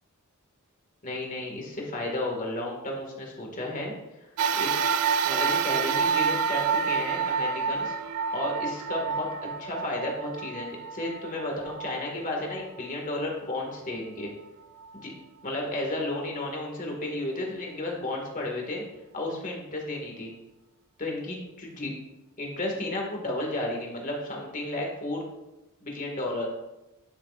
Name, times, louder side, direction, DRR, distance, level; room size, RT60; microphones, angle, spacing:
voice 1, 1.0-3.9 4.2-4.7 5.2-7.9 8.3-9.3 9.6-14.3 14.9-15.1 15.4-18.8 19.1-20.3 21.0-21.9 22.4-25.3 25.8-26.5, left 1 dB, 35° left, 0 dB, 2.0 m, -33 dB
sound 1, 4.4-13.0 13.6-13.7 14.8-14.9, right 6 dB, 90° right, 0.4 m, -28 dB
11.5 x 6.7 x 2.5 m, 0.96 s
head